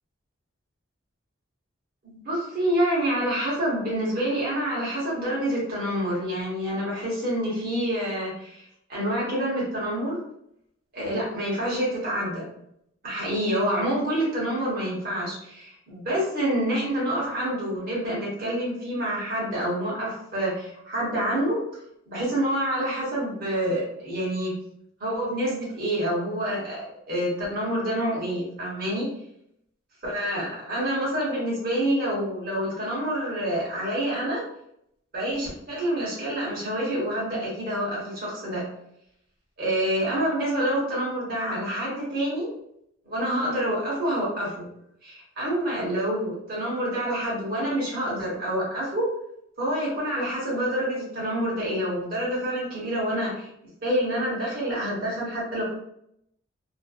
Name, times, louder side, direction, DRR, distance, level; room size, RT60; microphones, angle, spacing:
voice 1, 2.0-10.2 10.9-12.5 13.0-21.6 22.1-24.6 25.0-29.1 30.0-34.4 35.1-38.7 39.6-42.5 43.0-44.6 45.0-49.1 49.6-53.5 53.8-55.7, right 1 dB, 45° right, -6 dB, 1.0 m, -27 dB
2.5 x 2.1 x 2.3 m, 0.75 s
head